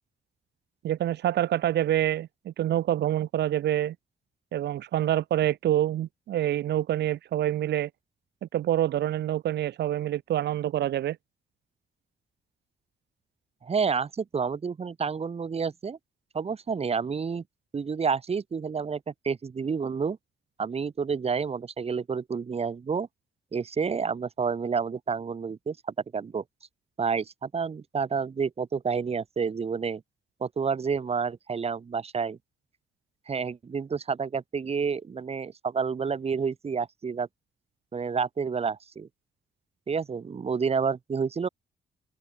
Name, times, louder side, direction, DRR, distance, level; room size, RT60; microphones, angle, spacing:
voice 1, 0.8-4.0 4.5-7.9 8.4-11.2, right 12 dB, 85° right, 3.3 m, -26 dB
voice 2, 13.6-16.0 16.3-17.4 17.7-20.2 20.6-23.1 23.5-25.8 26.1-26.4 27.0-30.0 30.4-32.4 33.3-37.3 37.9-39.1 39.9-41.5, right 5 dB, 35° right, 4.4 m, -29 dB
open air
cardioid pair, 125°, 17 cm